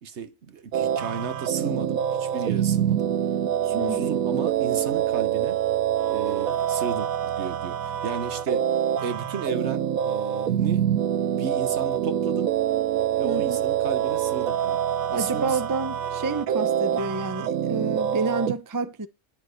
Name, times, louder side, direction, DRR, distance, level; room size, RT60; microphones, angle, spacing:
voice 1, 0.0-3.1 3.6-5.6 6.1-8.7 9.0-10.9 11.3-12.5 13.2-14.8 15.1-15.6, right 6 dB, 55° right, 1.2 m, -33 dB
sound 1, 0.7-18.5, right 10 dB, 90° right, 1.2 m, -26 dB
voice 2, 3.7-4.2 13.2-13.6 15.1-19.1, right 4 dB, 25° right, 0.4 m, -29 dB
10.5 x 5.9 x 6.5 m
omnidirectional pair, 1.4 m